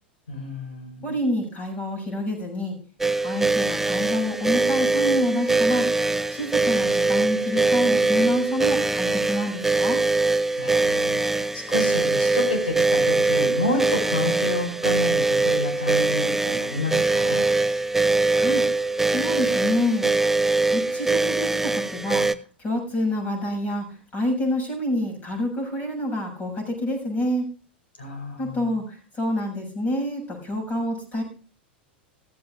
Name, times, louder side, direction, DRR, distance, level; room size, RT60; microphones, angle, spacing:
voice 1, 0.3-1.1 10.6-17.5 28.0-28.7, left 2 dB, 70° left, 4 dB, 4.9 m, -30 dB
voice 2, 1.0-2.8 3.2-10.0 18.3-18.7 19.1-20.1 20.7-27.5 28.4-31.2, left 1 dB, 30° left, 3 dB, 7.1 m, -27 dB
sound 1, 3.0-22.4, right 3 dB, 5° right, 0.5 m, -22 dB
15.5 x 15.5 x 2.5 m, 0.37 s
figure-of-eight pair, 90°, 6 cm